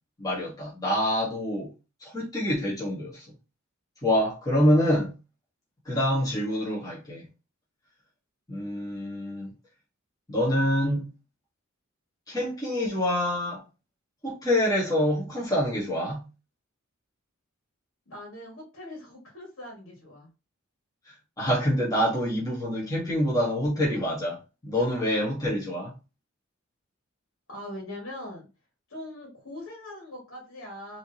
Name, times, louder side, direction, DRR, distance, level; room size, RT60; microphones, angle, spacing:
voice 1, 0.2-1.7 2.0-3.2 4.0-5.1 5.8-7.2 8.5-9.5 10.3-11.1 12.3-13.6 14.2-16.2 21.4-25.9, equal, 15° left, 1.7 m, -26 dB
voice 2, 18.1-20.3 27.5-28.5 28.9-31.0, left 1 dB, 65° left, 2.1 m, -41 dB
5.0 x 3.1 x 2.8 m
head